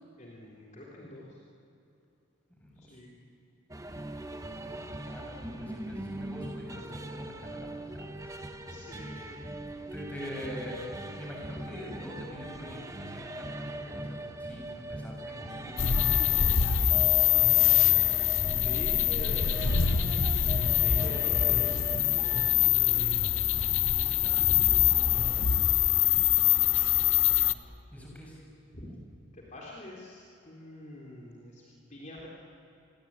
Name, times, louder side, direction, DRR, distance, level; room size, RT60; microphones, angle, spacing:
voice 1, 0.1-1.4 2.8-3.2 8.7-9.5 9.8-9.9 18.6-23.3 24.2-25.4 28.7-28.9 29.3-32.3, left 1 dB, 35° left, -3 dB, 3.9 m, -46 dB
voice 2, 2.6-3.0 4.7-8.7 9.9-10.8 11.2-18.0 24.2-24.5 26.8-26.9 27.9-28.4, equal, 5° left, -2 dB, 7.2 m, -45 dB
sound 1, 3.7-22.7, right 1 dB, 15° right, 1.3 m, -40 dB
sound 2, 15.8-27.5, left 10 dB, 70° left, 1.0 m, -24 dB
29.0 x 22.5 x 9.0 m, 2.8 s
head